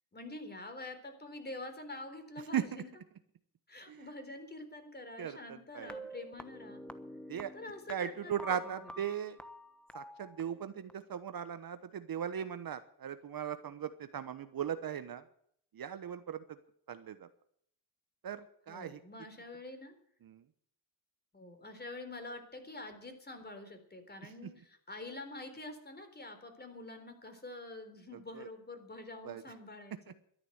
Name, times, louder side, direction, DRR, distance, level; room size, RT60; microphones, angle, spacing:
voice 1, 0.1-2.9 3.7-6.8 7.5-8.9 18.7-20.0 21.3-30.2, left 2 dB, 20° left, 7 dB, 3.8 m, -46 dB
voice 2, 5.2-5.9 7.3-7.5 7.9-9.4 9.9-15.3 15.7-16.6 16.9-17.3 18.2-19.0 20.2-20.4 24.2-24.3 28.3-28.5 29.2-29.4, right 9 dB, 45° right, 11 dB, 1.1 m, -38 dB
sound 1, 5.8-10.9, equal, ahead, 1.2 m, -49 dB
13.0 x 10.5 x 7.9 m, 0.66 s
cardioid pair, 85°, 48 cm